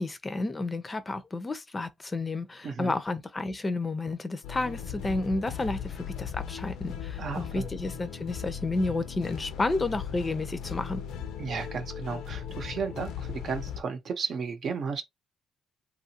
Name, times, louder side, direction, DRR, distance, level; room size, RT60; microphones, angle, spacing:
voice 1, 0.0-11.0, left 2 dB, 25° left, 0.5 m, -31 dB
voice 2, 2.6-2.9 7.2-7.6 11.4-15.0, right 5 dB, 60° right, 0.8 m, -34 dB
sound 1, 4.4-13.8, left 8 dB, 85° left, 0.6 m, -38 dB
2.9 x 2.5 x 2.8 m
cardioid pair, 90°, 0 cm